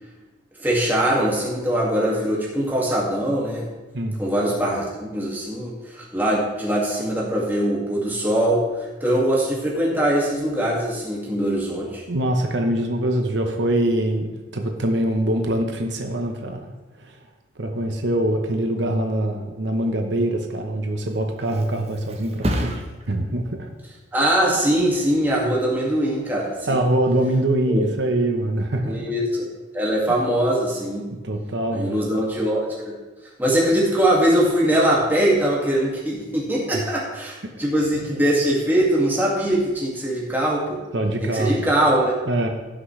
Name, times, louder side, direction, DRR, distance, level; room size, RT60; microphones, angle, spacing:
voice 1, 0.6-3.7 4.2-8.6 9.0-12.0 24.1-26.8 27.7-27.9 28.8-29.5 29.7-31.0 31.7-32.9 33.4-40.8 41.2-42.2, right 1 dB, 10° right, -5 dB, 2.2 m, -22 dB
voice 2, 12.1-16.7 17.0-17.2 17.6-23.7 26.7-29.0 31.2-32.1 36.7-36.8 40.9-41.6 42.3-42.5, right 1 dB, 75° right, 3 dB, 1.0 m, -23 dB
Thump thud, 20.8-28.3 28.7-29.1, equal, 35° right, 0.9 m, -34 dB
16.5 x 6.1 x 3.3 m, 1.2 s
head